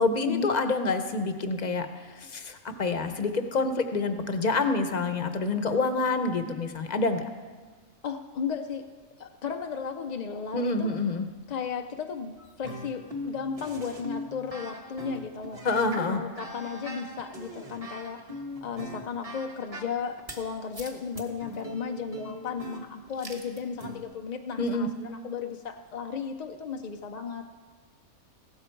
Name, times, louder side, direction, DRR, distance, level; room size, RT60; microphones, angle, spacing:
voice 1, 0.0-1.9 2.2-7.2 10.5-11.3 15.6-16.2 24.6-24.9, left 3 dB, 40° left, 8 dB, 0.8 m, -27 dB
voice 2, 8.0-8.9 9.2-11.0 11.5-15.6 16.1-18.2 18.6-27.5, left 6 dB, 60° left, 5 dB, 0.4 m, -35 dB
sound 1, 12.4-20.4 20.7-24.0, equal, 25° right, 1.3 m, -40 dB
16.0 x 13.0 x 4.5 m, 1.5 s
omnidirectional pair, 1.5 m